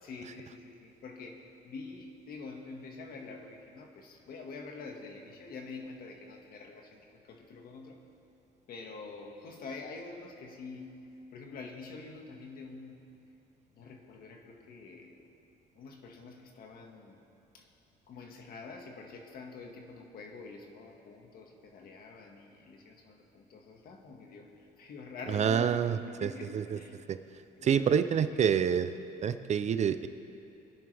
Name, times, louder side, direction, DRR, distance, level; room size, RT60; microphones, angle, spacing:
voice 1, 0.0-8.0 8.7-11.0 11.3-13.1 13.7-15.3 15.8-17.2 17.5-17.7 18.1-27.1 27.5-28.5, left 4 dB, 60° left, 2 dB, 1.9 m, -46 dB
voice 2, 25.3-26.3 27.1-27.2 27.6-28.9 29.2-30.1, right 8 dB, 40° right, 11 dB, 0.6 m, -27 dB
24.5 x 10.5 x 3.5 m, 2.8 s
cardioid pair, 110°, 17 cm